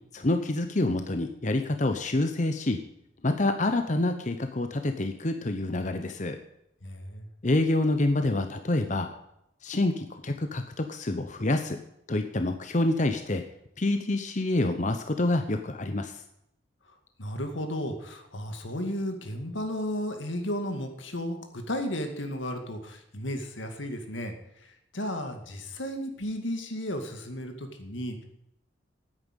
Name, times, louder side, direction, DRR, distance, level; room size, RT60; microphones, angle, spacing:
voice 1, 0.1-2.8 3.2-6.4 7.4-9.1 9.6-11.8 12.1-13.4 13.8-16.1, left 2 dB, 40° left, 7 dB, 0.8 m, -27 dB
voice 2, 6.8-7.3 17.2-24.3 24.6-28.2, equal, 85° left, 5 dB, 2.2 m, -34 dB
10.0 x 9.1 x 9.0 m, 0.78 s
head